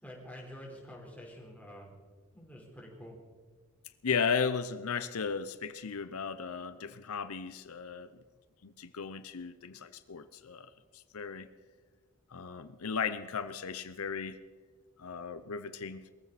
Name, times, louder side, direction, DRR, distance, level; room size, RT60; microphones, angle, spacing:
voice 1, 0.0-1.9 2.3-3.1, equal, 5° left, -2 dB, 4.1 m, -48 dB
voice 2, 4.0-8.1 8.6-10.7 10.9-11.5 12.3-14.4 15.0-16.0, left 6 dB, 85° left, 12 dB, 0.7 m, -35 dB
22.5 x 15.0 x 4.2 m, 1.4 s
head